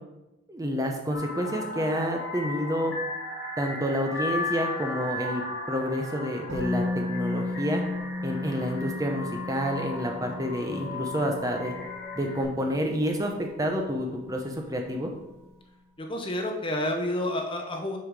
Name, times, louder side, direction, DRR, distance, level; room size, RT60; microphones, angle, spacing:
voice 1, 0.5-2.9 3.6-7.8 8.2-11.7 12.1-15.1, equal, 15° right, 2 dB, 0.7 m, -29 dB
sound 1, 1.1-12.4, left 2 dB, 50° left, 1.6 m, -36 dB
Musical instrument, 6.5-14.4 14.7-14.8, left 2 dB, 55° right, 2.7 m, -35 dB
voice 2, 16.0-18.0, left 1 dB, 25° left, 3 dB, 0.7 m, -29 dB
6.5 x 5.6 x 4.7 m, 0.98 s
head